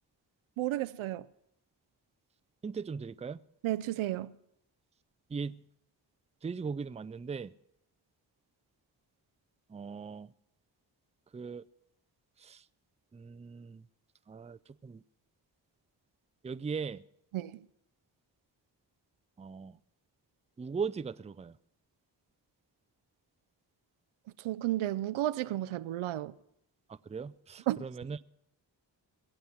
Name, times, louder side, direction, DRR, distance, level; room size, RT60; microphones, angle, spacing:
voice 1, 0.6-1.3 3.6-4.3 17.3-17.7 24.4-26.3 27.7-27.8, right 14 dB, 85° right, 0.6 m, -32 dB
voice 2, 2.6-3.4 5.3-5.6 6.4-7.5 9.7-10.3 11.3-11.6 12.4-12.6 13.1-13.8 14.3-15.0 16.4-17.0 19.4-19.8 20.6-21.6 26.9-28.2, right 5 dB, 15° right, 0.4 m, -39 dB
21.5 x 8.0 x 5.8 m
cardioid pair, 50°, 47 cm